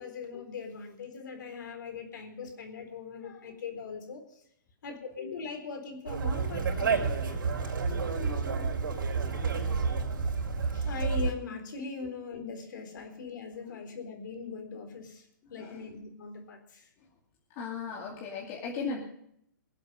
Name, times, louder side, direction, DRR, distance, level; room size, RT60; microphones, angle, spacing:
voice 1, 0.0-4.4 4.8-7.1 10.6-16.9, left 5 dB, 65° left, 5 dB, 4.0 m, -41 dB
Conversation, 6.1-11.3, right 5 dB, 75° right, 4.6 m, -30 dB
voice 2, 7.4-7.8 15.6-15.8 17.5-19.0, left 5 dB, 35° left, -3 dB, 2.5 m, -37 dB
23.0 x 8.0 x 5.4 m, 0.72 s
hypercardioid pair, 145°, 11 cm